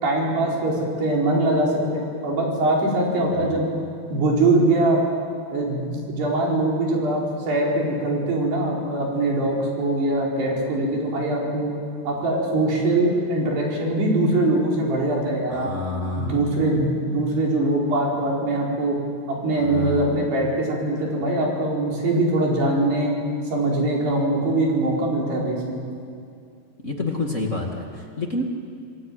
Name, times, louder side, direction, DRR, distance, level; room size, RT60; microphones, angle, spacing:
voice 1, 0.0-3.7 4.1-5.0 5.5-7.2 7.5-11.7 12.0-15.7 16.2-19.0 19.3-23.1 23.5-25.8, right 2 dB, 70° right, -2 dB, 6.6 m, -22 dB
voice 2, 3.2-3.8 15.5-16.6 19.5-20.2 26.8-28.4, left 2 dB, 30° left, 0 dB, 1.3 m, -29 dB
27.5 x 19.5 x 9.3 m, 2.4 s
omnidirectional pair, 5.0 m